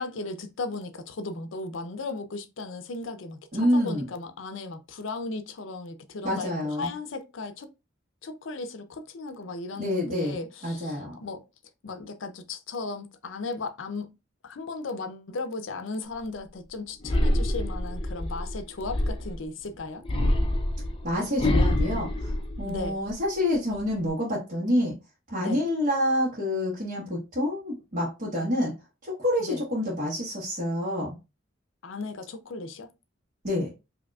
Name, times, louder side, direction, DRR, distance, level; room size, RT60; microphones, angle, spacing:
voice 1, 0.0-7.7 8.2-11.4 11.8-14.1 14.4-20.1 22.6-23.0 25.4-25.6 29.4-29.6 31.8-32.9, left 3 dB, 70° left, 0.5 m, -36 dB
voice 2, 3.5-4.0 6.2-6.9 9.8-11.1 21.0-22.3 22.6-24.9 25.3-28.7 29.0-31.2 33.4-33.7, left 1 dB, 45° right, 1.3 m, -27 dB
sound 1, 17.0-19.4 20.0-23.1 23.5-24.1, left 1 dB, 25° left, 0.6 m, -26 dB
4.9 x 2.7 x 2.3 m
head